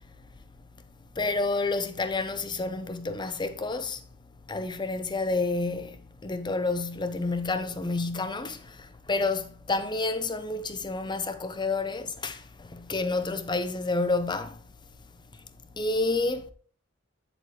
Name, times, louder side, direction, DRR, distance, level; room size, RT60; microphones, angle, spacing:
voice 1, 1.2-4.0 4.5-14.6 15.7-16.5, left 3 dB, 20° left, 0.7 m, -29 dB
7.7 x 7.6 x 3.2 m
head